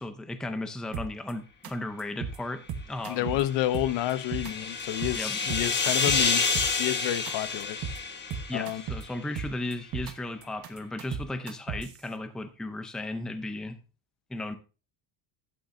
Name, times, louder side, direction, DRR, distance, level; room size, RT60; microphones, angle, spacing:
voice 1, 0.0-3.4 5.1-5.4 8.5-13.8 14.3-14.6, left 2 dB, ahead, 0.6 m, -35 dB
sound 1, 0.9-1.3 1.6-1.7 2.0-2.4 2.7-3.4 3.7-4.5 4.8-5.2 5.5-6.9 7.3-7.4 7.6-8.0 8.3-9.0 9.4-10.1 10.4-12.0, right 6 dB, 45° right, 1.3 m, -35 dB
voice 2, 3.1-6.4 6.8-7.8 8.5-8.8, left 13 dB, 60° left, 0.8 m, -29 dB
sound 2, 3.4-9.0, left 4 dB, 20° left, 1.3 m, -29 dB
12.0 x 8.5 x 2.6 m
cardioid pair, 155°, 49 cm